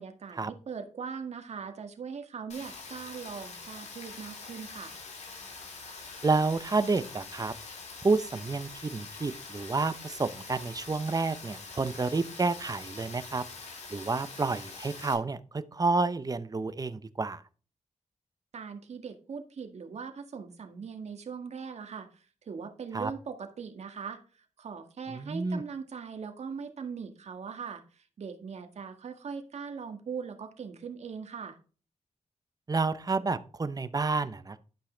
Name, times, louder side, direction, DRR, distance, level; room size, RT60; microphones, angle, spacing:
voice 1, 0.0-4.9 18.5-31.6, right 6 dB, 65° right, 6 dB, 1.9 m, -40 dB
Rain, 2.5-15.1, left 4 dB, 75° left, 3.8 m, -45 dB
voice 2, 6.2-7.5 8.0-13.4 13.9-17.4 22.9-23.1 25.1-25.6 32.7-34.6, right 3 dB, 30° right, 13 dB, 0.9 m, -29 dB
11.5 x 5.6 x 4.0 m, 0.37 s
cardioid pair, 75°, 12 cm